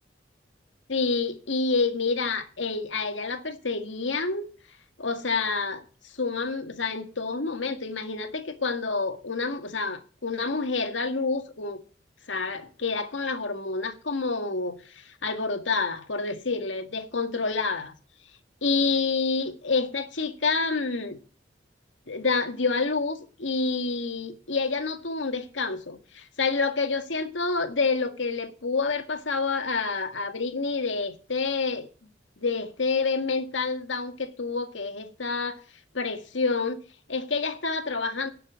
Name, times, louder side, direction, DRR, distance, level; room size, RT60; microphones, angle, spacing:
voice 1, 0.9-4.5 5.0-11.8 12.3-17.9 18.6-21.2 22.1-31.9 32.4-35.6 35.9-36.8 37.1-38.3, left 4 dB, 85° left, 1.8 m, -28 dB
11.0 x 7.1 x 8.2 m
head